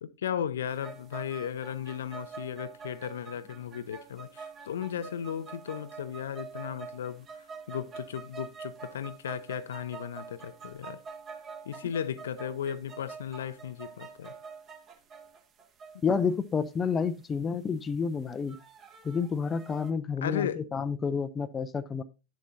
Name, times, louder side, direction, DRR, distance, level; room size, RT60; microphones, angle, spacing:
voice 1, 0.0-11.0 11.7-14.3 20.2-20.6, left 9 dB, 60° left, 0.6 m, -35 dB
sound 1, 0.6-19.9, right 5 dB, 30° right, 1.4 m, -46 dB
voice 2, 16.0-18.6 19.0-22.0, left 5 dB, 20° left, 0.5 m, -29 dB
10.5 x 7.2 x 2.7 m
figure-of-eight pair, 90°, 0 cm